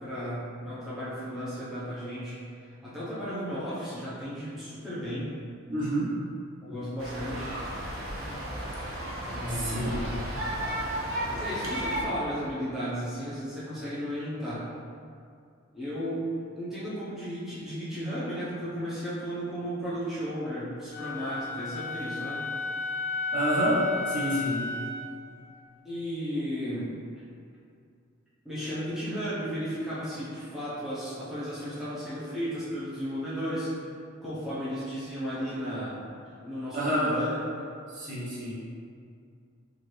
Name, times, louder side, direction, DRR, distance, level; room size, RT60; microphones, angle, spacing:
voice 1, 0.0-5.3 6.6-7.6 9.2-10.1 11.3-14.7 15.7-16.3 16.6-22.5 25.8-26.9 28.4-33.7 34.2-37.4, equal, ahead, -12 dB, 0.7 m, -34 dB
voice 2, 5.7-6.1 9.5-10.0 23.3-24.7 36.7-37.1 37.9-38.6, equal, 40° right, -7 dB, 0.8 m, -28 dB
sound 1, 7.0-12.0, right 1 dB, 75° right, 0.8 m, -33 dB
Wind instrument woodwind instrument, 20.9-25.1, left 3 dB, 35° left, 0.4 m, -33 dB
4.6 x 2.5 x 3.1 m, 2.3 s
head